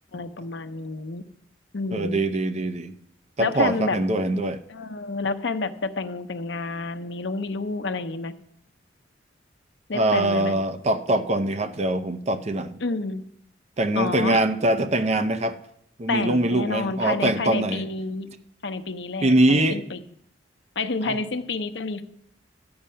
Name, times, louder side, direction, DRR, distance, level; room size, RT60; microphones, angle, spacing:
voice 1, 0.1-1.2 1.7-2.2 3.4-4.0 4.7-8.3 9.9-10.5 12.8-13.2 14.0-14.4 16.1-18.3 18.6-20.0 20.8-22.0, left 3 dB, 75° left, 0.8 m, -29 dB
voice 2, 1.9-2.9 3.4-4.6 9.9-12.8 13.8-15.6 16.0-17.8 19.2-19.8 21.0-21.2, right 1 dB, 35° right, 0.7 m, -23 dB
12.5 x 8.7 x 5.6 m
head